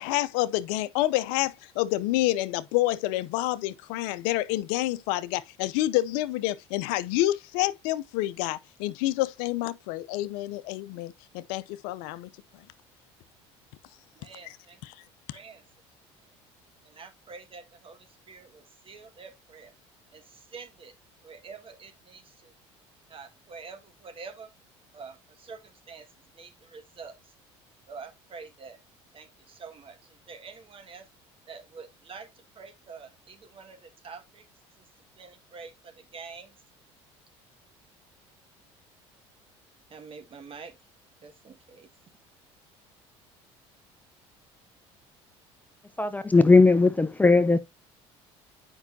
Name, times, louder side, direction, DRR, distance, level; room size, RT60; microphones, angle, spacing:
voice 1, 0.0-12.3 14.4-14.6 14.8-14.9, left 16 dB, 75° left, 0.6 m, -28 dB
voice 2, 14.2-14.8 15.3-15.6 16.8-19.7 20.1-20.9 21.2-22.5 23.1-24.5 24.9-26.1 26.3-27.1 27.9-28.8 29.1-31.1 31.5-32.3 32.6-34.5 35.2-36.6 39.9-40.8 41.2-41.9, right 5 dB, 40° right, 1.8 m, -46 dB
voice 3, 46.0-47.6, left 3 dB, 10° left, 0.6 m, -18 dB
8.2 x 5.5 x 2.7 m
supercardioid pair, 75°, 14 cm